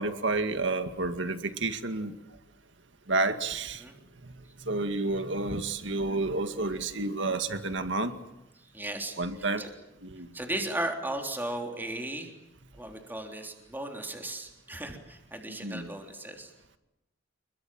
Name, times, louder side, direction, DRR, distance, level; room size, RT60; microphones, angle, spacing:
voice 1, 0.0-2.1 3.1-3.8 4.7-8.1 9.2-9.6 10.0-10.3 15.6-15.9, right 3 dB, 65° right, 8 dB, 2.0 m, -30 dB
voice 2, 8.7-9.2 9.6-9.7 10.3-12.3 12.8-16.5, right 1 dB, 10° right, 2 dB, 3.5 m, -36 dB
29.0 x 23.0 x 7.8 m, 0.94 s
head